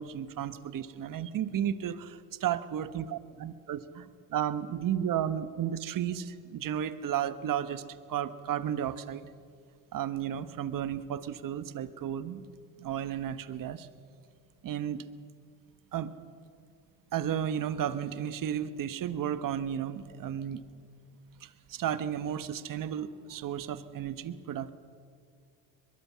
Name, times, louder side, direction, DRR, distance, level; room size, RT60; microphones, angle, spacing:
voice 1, 0.0-7.8 8.1-9.3 9.9-12.4 12.8-13.9 14.6-15.0 15.9-16.1 17.1-20.7 21.4-24.7, right 9 dB, 55° right, 13 dB, 1.3 m, -33 dB
22.5 x 22.0 x 7.4 m, 2.2 s
cardioid pair, 95°, 38 cm